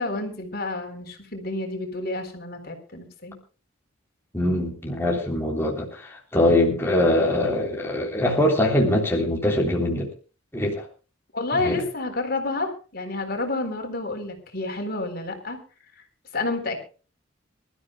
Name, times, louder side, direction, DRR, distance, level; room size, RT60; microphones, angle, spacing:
voice 1, 0.0-3.4 11.3-15.6 16.0-16.1 16.3-16.8, left 2 dB, 50° left, 4 dB, 4.0 m, -29 dB
voice 2, 4.3-10.1 10.5-10.8 11.5-11.8, left 1 dB, 10° left, -1 dB, 3.4 m, -23 dB
26.5 x 13.5 x 2.3 m, 0.36 s
head